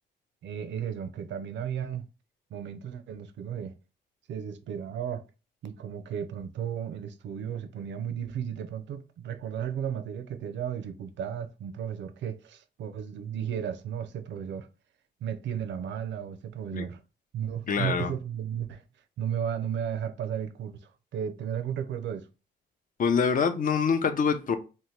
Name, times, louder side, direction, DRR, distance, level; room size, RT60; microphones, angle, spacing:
voice 1, 0.4-2.1 2.5-3.8 4.3-5.3 5.6-14.7 15.2-17.0 17.3-18.8 19.2-22.3, right 8 dB, 70° right, 0.5 m, -34 dB
voice 2, 17.7-18.1 23.0-24.6, left 6 dB, 45° left, 0.5 m, -25 dB
2.7 x 2.1 x 3.1 m
cardioid pair, 90°, 20 cm